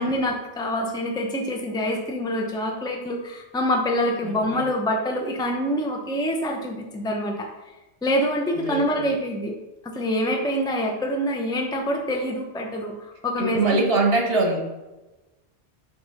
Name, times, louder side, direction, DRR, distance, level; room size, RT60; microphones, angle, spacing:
voice 1, 0.0-7.5 8.0-9.5 9.8-13.8, equal, 5° left, 1 dB, 0.7 m, -26 dB
voice 2, 4.2-4.7 8.6-9.1 13.4-14.6, right 2 dB, 60° right, 2 dB, 1.5 m, -23 dB
7.9 x 3.2 x 5.5 m, 1.1 s
omnidirectional pair, 1.1 m